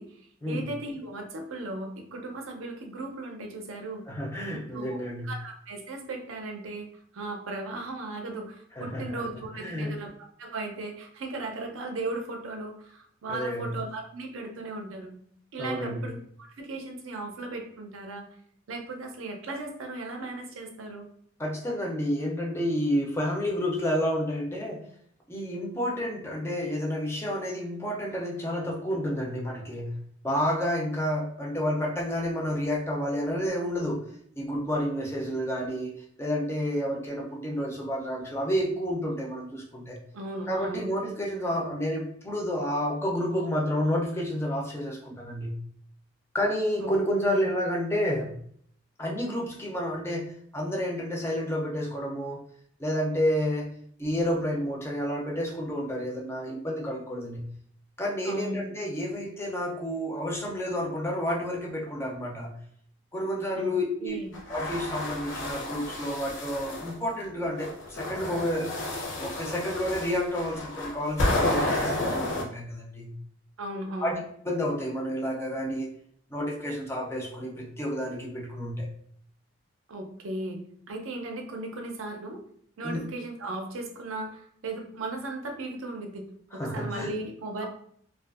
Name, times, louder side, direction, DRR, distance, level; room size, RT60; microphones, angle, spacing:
voice 1, 0.0-4.1 4.5-4.9 5.2-6.9 7.1-10.1 10.4-15.1 15.5-18.3 18.7-21.1 40.1-40.9 46.8-46.9 47.3-47.5 58.2-58.6 63.6-63.7 64.0-64.3 73.6-74.2 79.9-80.6 80.9-82.4 82.8-87.7, right 2 dB, 85° right, 3 dB, 0.5 m, -36 dB
voice 2, 4.1-5.3 8.8-9.2 9.6-9.9 13.3-13.7 15.6-16.0 21.4-24.9 25.3-30.0 30.2-34.1 34.4-40.0 40.5-45.6 46.3-48.3 49.0-52.4 52.8-53.7 54.0-57.5 58.0-62.6 63.1-64.2 64.5-68.7 69.2-73.1 74.0-74.1 74.5-75.9 76.3-78.9 82.8-83.0 86.6-87.1, equal, 10° left, -2 dB, 0.4 m, -30 dB
sound 1, 64.3-66.9 67.6-72.4, left 1 dB, 70° left, 0.6 m, -31 dB
2.5 x 2.3 x 2.3 m, 0.63 s
head